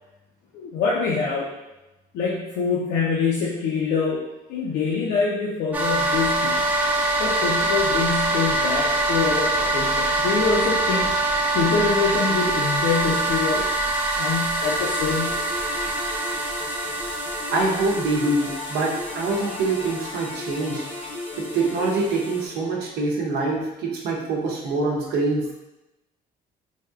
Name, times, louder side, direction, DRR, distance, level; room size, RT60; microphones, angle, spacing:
voice 1, 0.5-1.5 2.1-4.2 4.5-6.6 7.2-11.1 11.5-13.7 14.1-15.4, left 5 dB, 80° left, -5 dB, 0.5 m, -25 dB
sound 1, 5.7-22.4, right 2 dB, 10° right, 0.4 m, -25 dB
sound 2, 14.6-23.0, left 3 dB, 35° left, 0.6 m, -36 dB
voice 2, 17.5-20.9 21.4-25.6, right 3 dB, 70° right, -1 dB, 0.7 m, -25 dB
3.4 x 2.7 x 2.3 m, 0.97 s
cardioid pair, 110°, 17 cm